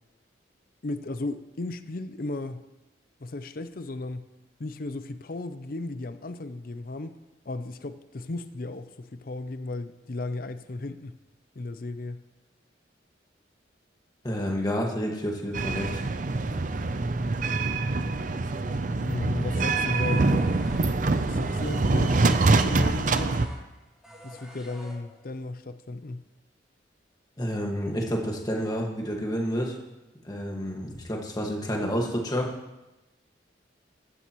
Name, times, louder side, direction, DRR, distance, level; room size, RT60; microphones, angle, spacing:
voice 1, 0.8-2.7 3.2-4.3 4.6-7.2 7.5-11.2 11.6-12.2 19.0-20.5 21.3-23.4 24.2-26.3, left 2 dB, 50° left, 11 dB, 0.5 m, -35 dB
voice 2, 14.2-16.0 27.4-29.8 30.2-32.5, equal, 20° left, -1 dB, 1.7 m, -29 dB
sound 1, 15.5-23.5, right 3 dB, 45° right, 0.5 m, -25 dB
sound 2, 19.9-25.4, equal, 5° right, 2.8 m, -48 dB
15.0 x 12.5 x 3.1 m, 1.0 s
head